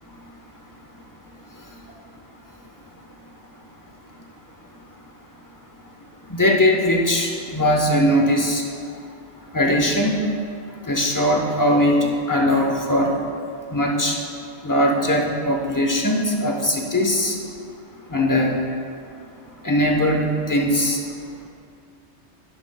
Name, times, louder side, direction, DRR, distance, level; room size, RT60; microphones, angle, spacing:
voice 1, 6.3-8.6 9.5-10.1 10.9-13.1 13.7-14.2 14.6-17.3 18.1-18.6 19.6-21.0, left 1 dB, 20° left, 0 dB, 0.9 m, -20 dB
11.0 x 10.5 x 2.2 m, 2.3 s
omnidirectional pair, 1.1 m